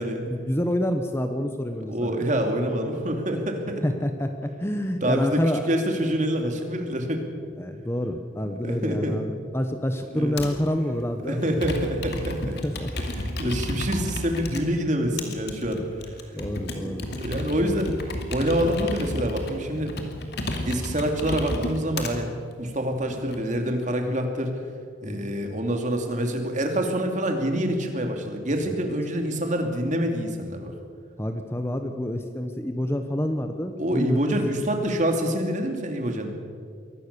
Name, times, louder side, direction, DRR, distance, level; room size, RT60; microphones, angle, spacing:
voice 1, 0.0-2.3 3.8-5.7 7.6-11.4 12.6-12.9 15.7-15.9 16.3-17.1 25.0-25.3 28.6-28.7 31.2-34.3, equal, 10° left, 6 dB, 0.9 m, -28 dB
voice 2, 1.9-3.8 5.0-7.2 8.4-9.2 10.1-10.4 11.2-12.6 13.2-15.8 16.6-18.0 18.3-19.9 20.6-22.3 22.6-24.5 25.0-30.7 33.8-36.3, equal, 40° right, 4 dB, 2.6 m, -26 dB
Computer keyboard, 10.4-10.7 11.4-14.6 15.2-22.1 22.8-23.4, left 1 dB, 55° left, 2.5 m, -32 dB
23.0 x 18.0 x 6.8 m, 2.2 s
head